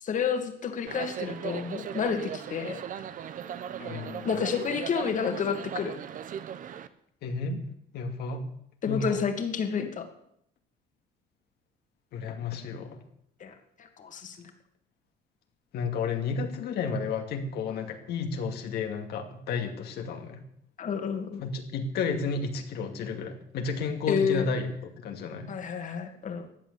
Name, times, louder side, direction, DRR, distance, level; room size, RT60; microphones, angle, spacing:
voice 1, 0.0-2.8 4.2-5.9 8.8-10.1 13.4-14.5 20.8-21.4 24.1-24.4 25.5-26.5, left 6 dB, 50° left, 6 dB, 2.4 m, -30 dB
sound 1, 0.9-6.9, right 9 dB, 50° right, 1.0 m, -38 dB
voice 2, 3.8-4.3 7.2-7.6 7.9-8.5 8.9-9.2 12.1-13.0 15.7-20.4 21.4-24.7 25.0-25.5, left 4 dB, 75° left, 5 dB, 2.4 m, -32 dB
15.0 x 9.2 x 8.3 m, 0.72 s
cardioid pair, 110°, 17 cm